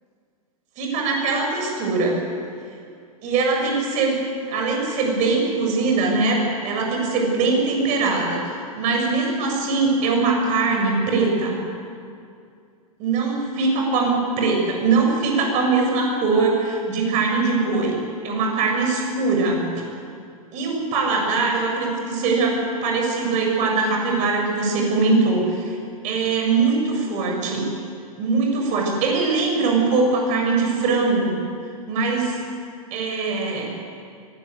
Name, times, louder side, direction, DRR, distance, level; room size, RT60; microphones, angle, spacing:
voice 1, 0.8-2.2 3.2-4.2 4.5-11.6 13.0-19.7 20.5-25.8 26.0-27.7 28.2-31.3 31.9-32.4 32.9-33.7, right 3 dB, 40° right, 0 dB, 7.5 m, -22 dB
24.0 x 17.5 x 8.4 m, 2.3 s
figure-of-eight pair, 100°, 19 cm